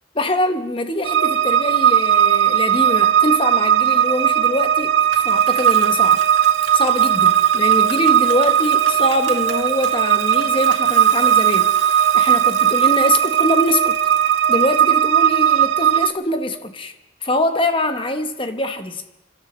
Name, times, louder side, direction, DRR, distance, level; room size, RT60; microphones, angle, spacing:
voice 1, 0.1-6.2 6.7-14.0 14.5-16.9 17.2-19.0, left 1 dB, 25° left, 0.9 m, -23 dB
sound 1, 1.0-16.1, right 9 dB, 65° right, 0.7 m, -17 dB
Bicycle, 5.1-14.8, right 8 dB, 85° right, 1.8 m, -36 dB
26.5 x 12.5 x 4.2 m
head